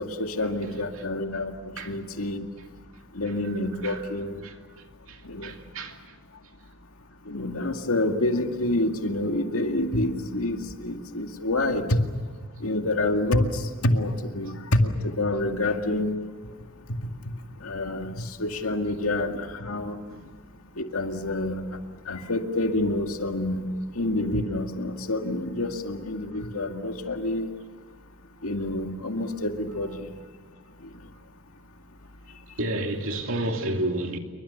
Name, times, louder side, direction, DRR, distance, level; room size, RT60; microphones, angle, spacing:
voice 1, 0.0-2.5 3.1-4.4 5.2-5.5 7.3-12.0 12.6-16.2 17.6-20.0 20.8-27.5 28.4-30.1, left 1 dB, 85° left, 2.1 m, -27 dB
voice 2, 5.1-6.2 11.7-11.8 20.1-20.2 32.6-34.2, right 1 dB, 65° right, 2.7 m, -31 dB
28.5 x 24.0 x 7.1 m
head